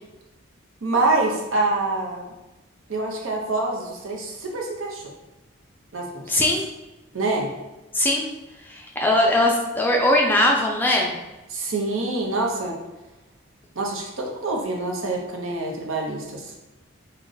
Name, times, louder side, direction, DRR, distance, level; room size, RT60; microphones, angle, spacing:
voice 1, 0.8-2.2 2.9-5.0 5.9-6.3 7.1-7.5 11.5-12.8 13.7-16.4, right 2 dB, 75° right, 0 dB, 0.8 m, -26 dB
voice 2, 6.3-6.6 7.9-8.2 8.6-11.2, left 1 dB, 10° left, -1 dB, 0.4 m, -20 dB
3.7 x 2.2 x 3.9 m, 1.1 s
head